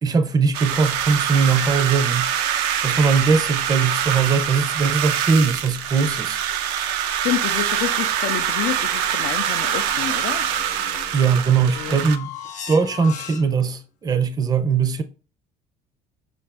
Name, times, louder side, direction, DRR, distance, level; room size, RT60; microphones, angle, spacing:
voice 1, 0.0-2.3 2.8-6.4 11.1-12.3 12.7-15.0, right 5 dB, 25° right, 0.5 m, -20 dB
sound 1, 0.5-12.2, right 9 dB, 80° right, 0.5 m, -24 dB
voice 2, 7.1-10.5 11.7-12.0, left 11 dB, 65° left, 0.4 m, -28 dB
sound 2, 7.9-13.8, left 8 dB, 45° left, 0.8 m, -40 dB
5.2 x 2.5 x 3.3 m
supercardioid pair, 70°, 17 cm